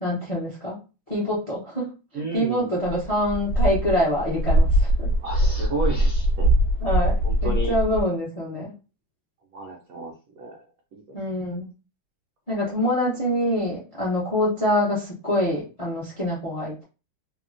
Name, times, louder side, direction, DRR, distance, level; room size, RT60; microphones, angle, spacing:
voice 1, 0.0-0.8 1.1-5.1 6.8-8.7 11.1-11.7 12.5-16.8, left 1 dB, 50° left, -4 dB, 0.4 m, -25 dB
voice 2, 2.1-2.8 5.2-6.5 7.2-7.7 9.5-10.7 10.9-11.0, right 2 dB, 80° right, 0 dB, 0.7 m, -32 dB
sound 1, 2.8-8.0, right 1 dB, 70° left, 1.2 m, -22 dB
3.4 x 2.1 x 2.5 m, 0.31 s
omnidirectional pair, 2.2 m